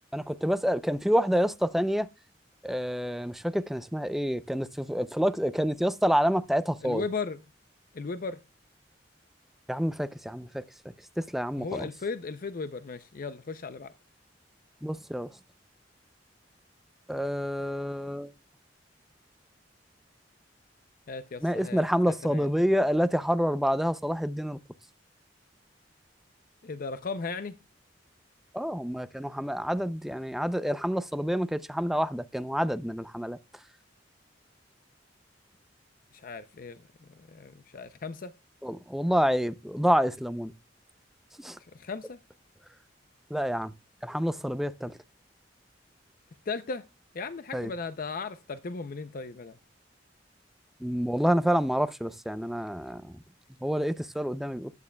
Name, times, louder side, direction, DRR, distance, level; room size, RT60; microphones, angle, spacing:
voice 1, 0.1-2.1 2.6-7.0 9.7-10.5 11.2-11.9 14.8-15.3 17.1-18.3 21.4-24.6 28.5-33.4 38.6-40.5 41.4-41.6 43.3-43.7 44.0-44.9 47.5-47.7 50.8-53.1 53.6-54.7, equal, ahead, 0.4 m, -28 dB
voice 2, 6.8-7.4 7.9-8.4 11.6-13.9 21.1-22.5 26.6-27.5 36.1-36.8 37.1-38.3 41.7-42.2 46.5-46.8 47.1-49.6, left 4 dB, 50° left, 0.5 m, -36 dB
14.0 x 11.0 x 2.2 m
head